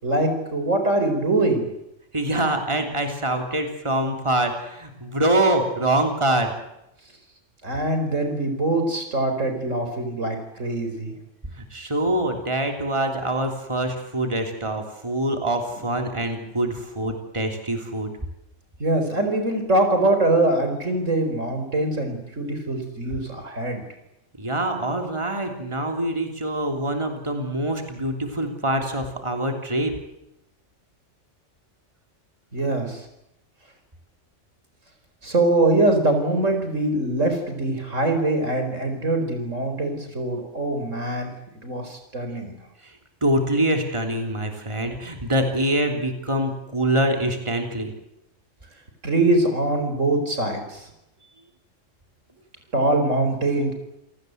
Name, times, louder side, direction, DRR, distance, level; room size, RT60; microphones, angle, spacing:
voice 1, 0.0-1.7 7.6-11.1 18.8-23.8 32.5-33.1 35.2-41.3 41.6-42.5 44.8-45.0 49.0-50.9 52.7-53.7, right 2 dB, 75° right, 6 dB, 5.0 m, -23 dB
voice 2, 2.1-6.5 11.6-18.1 24.4-29.9 43.2-47.9, right 1 dB, 25° right, 4 dB, 3.2 m, -24 dB
28.5 x 18.5 x 8.0 m, 0.85 s
omnidirectional pair, 1.3 m